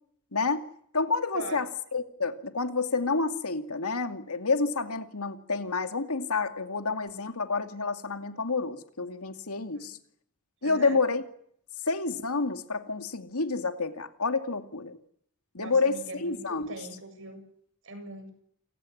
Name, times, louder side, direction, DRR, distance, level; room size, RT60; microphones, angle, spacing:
voice 1, 0.3-0.6 0.9-10.0 10.6-11.2 11.9-15.0 15.5-16.7, left 4 dB, 85° left, 8 dB, 2.4 m, -29 dB
voice 2, 10.6-11.0 15.6-17.4 17.8-18.3, right 2 dB, 60° right, 8 dB, 7.6 m, -41 dB
28.5 x 17.0 x 10.0 m, 0.68 s
head